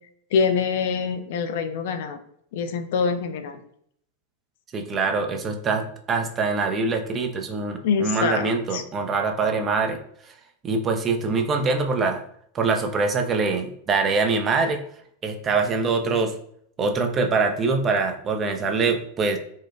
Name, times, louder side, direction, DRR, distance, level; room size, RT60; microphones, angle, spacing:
voice 1, 0.3-2.2 2.5-3.6 7.8-8.8, left 5 dB, 55° left, 8 dB, 0.3 m, -25 dB
voice 2, 4.7-10.0 10.6-12.2 12.5-14.8 15.2-16.3 16.8-19.4, right 4 dB, 25° right, 5 dB, 0.4 m, -24 dB
4.3 x 2.1 x 2.3 m, 0.66 s
figure-of-eight pair, 90°, 0 cm